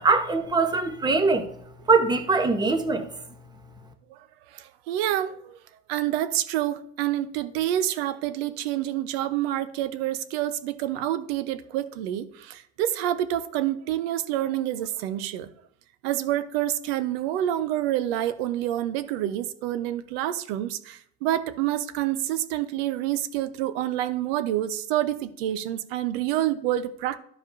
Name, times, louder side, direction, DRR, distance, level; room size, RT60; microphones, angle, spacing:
voice 1, 0.0-1.5 1.9-3.1, right 4 dB, 15° right, 7 dB, 0.9 m, -22 dB
voice 2, 4.5-5.6 5.9-15.5 16.0-27.2, right 12 dB, 70° right, 12 dB, 0.8 m, -28 dB
13.5 x 5.0 x 2.6 m, 0.69 s
supercardioid pair, 130°, 31 cm